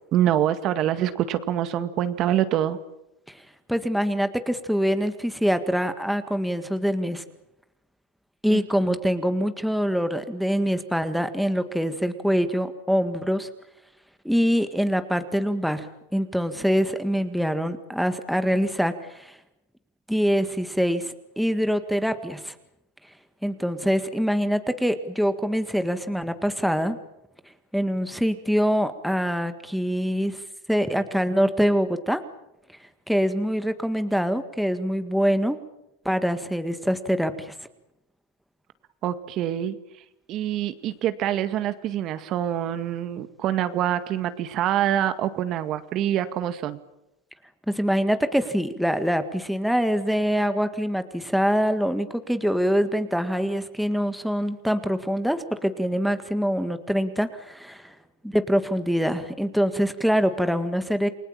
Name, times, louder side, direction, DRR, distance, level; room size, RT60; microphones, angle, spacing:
voice 1, 0.1-2.8 8.5-8.6 8.9-9.0 39.0-39.8 40.3-46.8, right 11 dB, 40° right, 11 dB, 1.9 m, -25 dB
voice 2, 3.7-7.2 8.4-13.5 14.3-19.4 20.1-22.5 23.4-27.0 27.7-30.4 30.7-32.2 33.1-35.6 36.1-37.5 47.7-57.9 58.2-61.1, equal, ahead, 9 dB, 1.8 m, -24 dB
29.0 x 20.0 x 8.9 m, 0.86 s
supercardioid pair, 125°, 0 cm